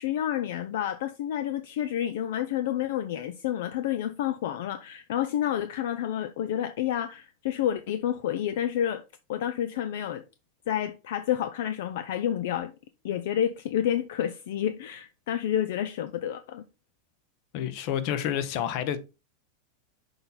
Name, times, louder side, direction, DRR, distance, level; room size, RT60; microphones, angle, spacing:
voice 1, 0.0-10.2 10.7-12.7 13.0-16.6, left 10 dB, 70° left, 0.5 m, -29 dB
voice 2, 17.5-19.0, left 10 dB, 55° left, 1.0 m, -29 dB
6.6 x 4.0 x 4.2 m
supercardioid pair, 130°, 0 cm